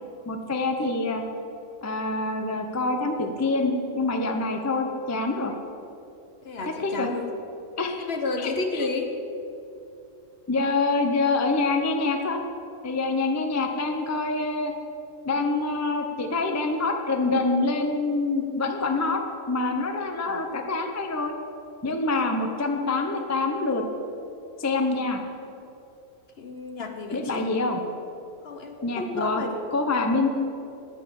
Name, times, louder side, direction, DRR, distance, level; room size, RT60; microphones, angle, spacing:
voice 1, 0.3-1.2 1.8-5.5 6.8-7.1 7.8-8.1 8.4-8.9 10.5-12.4 12.8-14.7 15.2-19.2 19.5-21.4 21.8-23.8 24.6-25.2 27.1-27.8 28.8-29.4 29.7-30.3, left 3 dB, 20° left, 4 dB, 0.4 m, -26 dB
voice 2, 6.4-7.3 8.0-9.1 26.4-27.5 28.4-29.7, left 3 dB, 50° left, 5 dB, 1.0 m, -31 dB
9.5 x 8.9 x 7.0 m, 2.8 s
omnidirectional pair, 1.6 m